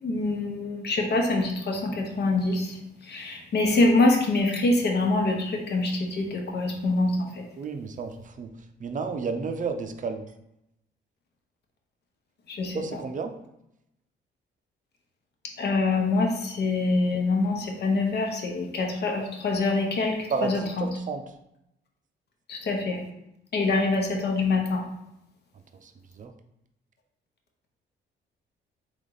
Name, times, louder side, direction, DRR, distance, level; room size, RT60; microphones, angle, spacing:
voice 1, 0.0-2.8 3.1-7.4 12.5-12.8 15.6-20.2 20.4-20.9 22.5-23.0 23.5-24.8, left 2 dB, 55° left, 1 dB, 0.9 m, -25 dB
voice 2, 7.6-8.5 8.8-10.2 12.7-13.3 20.1-21.3 25.7-26.3, right 5 dB, 40° right, 6 dB, 0.5 m, -32 dB
3.5 x 3.0 x 3.9 m, 0.83 s
cardioid pair, 90°, 20 cm